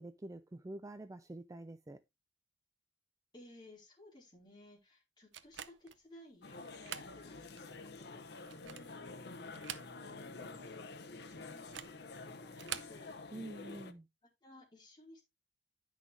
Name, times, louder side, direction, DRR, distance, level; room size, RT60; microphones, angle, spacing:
voice 1, 0.0-2.0 13.3-14.1, right 2 dB, 20° right, 0.4 m, -47 dB
voice 2, 3.3-13.2 14.4-15.2, left 1 dB, 25° left, 4.4 m, -59 dB
sound 1, 5.3-6.0 6.7-7.1 7.6-7.7 8.4-9.0 9.5-10.3 10.5-10.6 11.6-12.0 12.5-13.0, right 9 dB, 90° right, 0.7 m, -46 dB
sound 2, 6.4-13.9, left 3 dB, 60° left, 0.9 m, -49 dB
9.9 x 6.2 x 3.4 m
head